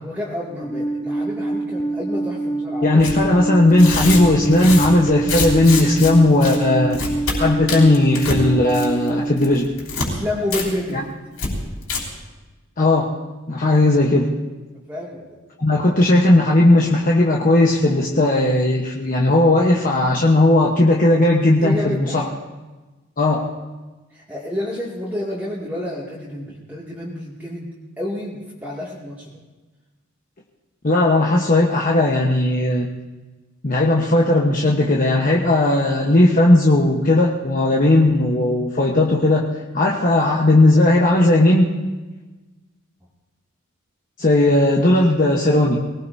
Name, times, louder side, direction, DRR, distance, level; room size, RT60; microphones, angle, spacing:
voice 1, 0.0-3.0 10.0-11.0 14.9-15.4 21.6-22.2 24.1-27.7 28.0-29.3 45.0-45.1, left 1 dB, 10° right, -7 dB, 2.5 m, -29 dB
Alarm, 0.6-9.5, right 2 dB, 15° left, 0.4 m, -25 dB
voice 2, 2.8-7.0 7.4-9.7 10.9-11.0 12.8-13.1 13.5-14.3 15.6-22.3 23.2-23.5 30.8-32.9 33.6-39.5 39.7-41.7 44.2-45.8, left 1 dB, 40° left, -2 dB, 1.3 m, -16 dB
Tearing, 3.0-3.2 3.7-6.1 6.4-6.6 6.9-7.4 7.7-8.4 8.7-9.1 9.4-10.1 10.5-10.6 10.9-11.0 11.4-11.5 11.8-12.0, left 4 dB, 80° left, 5.4 m, -25 dB
24.0 x 18.5 x 2.8 m, 1.2 s
head